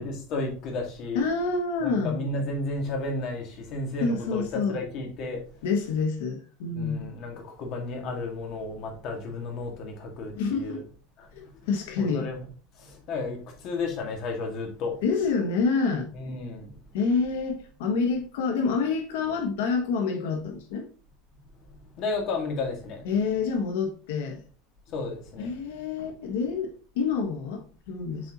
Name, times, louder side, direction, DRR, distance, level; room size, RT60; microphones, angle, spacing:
voice 1, 0.0-1.2 1.8-5.6 6.7-10.8 11.2-11.3 12.0-12.5 12.7-15.0 16.1-16.7 21.6-23.0 24.9-25.6, left 3 dB, 40° left, 1.8 m, -33 dB
voice 2, 1.1-2.2 4.0-4.8 5.6-7.1 10.3-10.8 11.3-12.3 15.0-16.1 16.9-20.9 23.0-24.4 25.4-28.3, left 4 dB, 80° left, 1.3 m, -27 dB
7.7 x 4.3 x 2.9 m
supercardioid pair, 170°, 0 cm